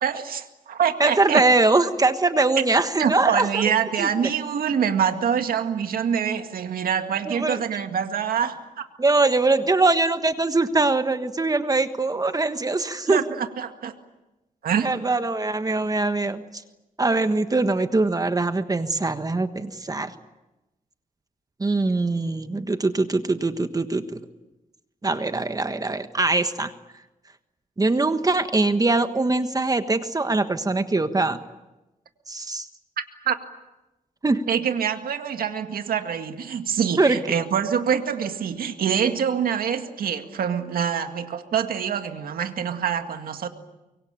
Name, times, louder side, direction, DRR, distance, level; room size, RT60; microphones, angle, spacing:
voice 1, 0.0-1.4 3.0-8.8 13.1-13.9 14.6-14.9 33.3-33.4 34.5-43.5, right 8 dB, 90° right, 7 dB, 2.0 m, -25 dB
voice 2, 1.0-3.6 4.0-4.1 7.3-7.6 9.0-13.2 14.8-16.4 17.0-20.1 21.6-24.2 25.0-26.7 27.8-31.4 32.3-32.7 34.2-34.4 37.0-37.2, right 3 dB, 25° right, 9 dB, 1.4 m, -22 dB
24.5 x 23.5 x 8.9 m, 1.0 s
cardioid pair, 95°, 15 cm